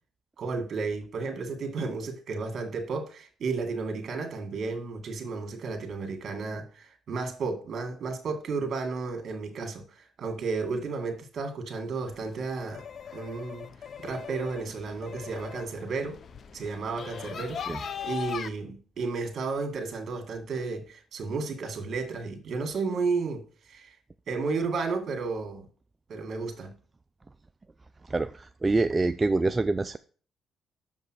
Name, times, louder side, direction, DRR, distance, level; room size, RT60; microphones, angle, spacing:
voice 1, 0.4-12.8 13.1-13.7 14.0-16.2 16.5-23.4 23.7-24.0 24.3-25.7 26.1-26.7, right 4 dB, 55° right, 2.0 m, -33 dB
sound 1, 12.1-18.5, left 7 dB, 55° left, 0.6 m, -40 dB
voice 2, 28.1-30.0, right 3 dB, 20° right, 0.4 m, -26 dB
6.8 x 5.4 x 6.3 m
cardioid pair, 90°, 0 cm